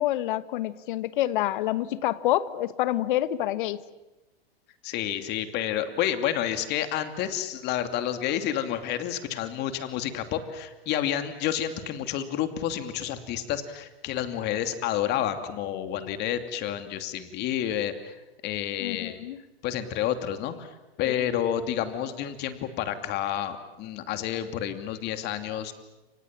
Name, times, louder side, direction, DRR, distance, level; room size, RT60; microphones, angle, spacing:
voice 1, 0.0-3.8 18.8-19.4 21.0-21.2, left 14 dB, 55° left, 15 dB, 1.4 m, -27 dB
voice 2, 4.8-18.2 18.4-19.2 19.6-25.7, left 10 dB, 35° left, 9 dB, 2.7 m, -30 dB
30.0 x 25.0 x 7.5 m, 1.0 s
hypercardioid pair, 130°, 31 cm